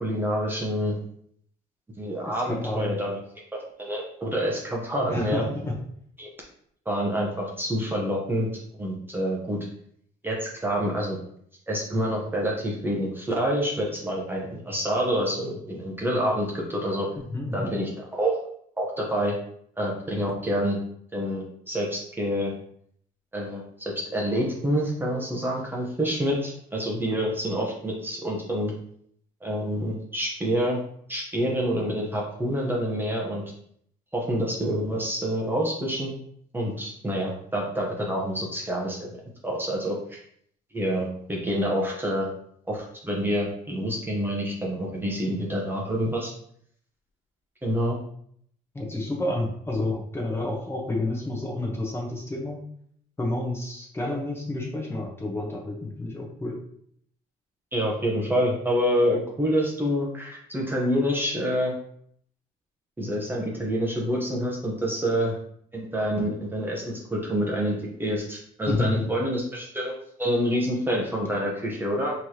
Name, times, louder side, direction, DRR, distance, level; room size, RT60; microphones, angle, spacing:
voice 1, 0.0-1.0 2.0-3.2 3.5-5.4 6.2-6.3 6.9-8.5 8.8-9.6 10.2-11.2 11.7-17.1 17.5-18.4 18.8-19.3 19.8-20.8 21.1-22.5 23.3-28.7 29.4-30.8 31.1-33.4 34.1-36.1 36.5-39.1 39.4-40.2 40.7-42.3 42.7-46.3 47.6-48.0 54.0-54.1 57.7-61.7 63.0-65.4 65.7-69.9 70.2-72.1, equal, 10° right, -3 dB, 0.9 m, -27 dB
voice 2, 2.3-3.0 5.1-5.8 17.2-17.7 48.7-52.6 53.2-56.6 68.7-69.1, left 2 dB, 15° left, -1 dB, 1.0 m, -30 dB
4.5 x 3.1 x 2.9 m, 0.66 s
cardioid pair, 110°, 17 cm